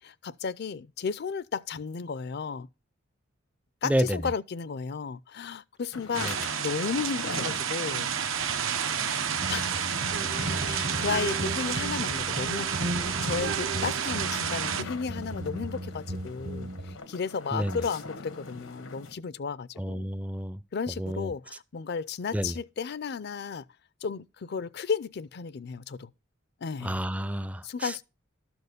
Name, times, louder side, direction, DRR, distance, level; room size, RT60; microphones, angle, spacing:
voice 1, 0.0-2.7 3.8-8.1 9.5-9.9 10.6-12.9 13.2-20.1 20.7-23.6 24.0-26.1 26.6-27.0 27.6-28.0, left 5 dB, 55° left, 0.5 m, -34 dB
voice 2, 3.8-4.2 6.2-6.4 10.2-10.7 17.5-17.8 19.8-20.6 21.0-21.3 22.3-22.5 26.8-28.0, equal, 5° right, 0.4 m, -30 dB
sound 1, 5.9-19.1, left 3 dB, 90° left, 1.3 m, -44 dB
sound 2, 6.1-14.8, right 7 dB, 90° right, 0.9 m, -30 dB
sound 3, 9.4-17.0, right 2 dB, 60° right, 1.1 m, -35 dB
12.5 x 4.4 x 6.6 m
head